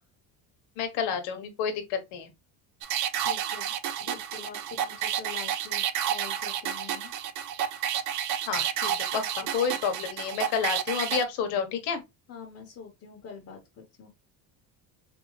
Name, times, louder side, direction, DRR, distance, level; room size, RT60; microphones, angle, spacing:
voice 1, 0.8-2.3 8.5-12.0, left 6 dB, 85° left, 1.0 m, -30 dB
sound 1, 2.8-11.2, right 10 dB, 50° right, 0.5 m, -30 dB
voice 2, 3.2-7.1 9.1-9.2 12.3-14.1, left 6 dB, 35° left, 1.0 m, -45 dB
3.6 x 2.6 x 3.0 m
cardioid pair, 140°, 39 cm